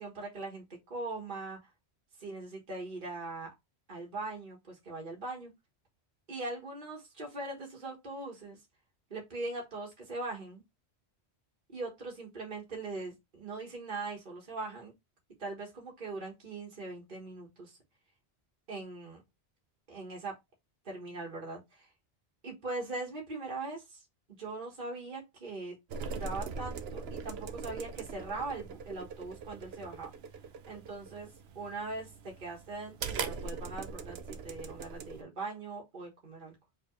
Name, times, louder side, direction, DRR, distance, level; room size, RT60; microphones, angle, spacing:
voice 1, 0.0-1.6 2.2-3.5 3.9-5.5 6.3-8.6 9.1-10.6 11.7-14.9 15.4-17.8 18.7-19.2 19.9-20.4 20.8-21.9 22.4-24.0 24.4-25.8 26.1-30.1 30.7-31.3 31.5-34.2 34.4-36.5, right 3 dB, 50° right, 1.6 m, -41 dB
sound 1, 25.9-35.2, right 5 dB, 70° right, 0.9 m, -41 dB
4.6 x 3.6 x 3.1 m
omnidirectional pair, 1.1 m